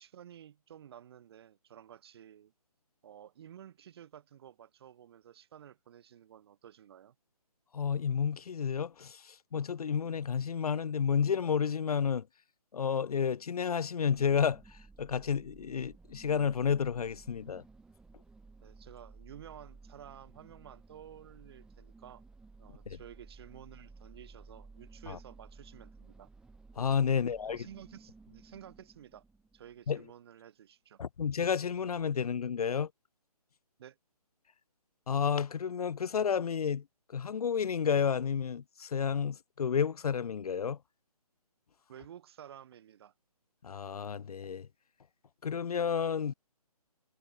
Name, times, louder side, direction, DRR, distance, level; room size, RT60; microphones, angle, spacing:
voice 1, 0.0-2.5 3.0-7.1 18.6-22.2 22.6-26.3 27.1-29.2 29.5-31.0 33.8-34.0 41.9-43.1, right 10 dB, 40° right, 6.7 m, -52 dB
voice 2, 7.7-12.2 12.7-17.6 22.9-23.0 25.1-25.2 26.8-27.6 29.9-30.0 31.0-32.9 35.1-36.8 37.1-40.8 43.6-44.7 45.4-46.3, left 7 dB, 70° left, 0.4 m, -31 dB
sound 1, 14.1-30.0, right 3 dB, 5° right, 1.6 m, -55 dB
figure-of-eight pair, 145°, 20 cm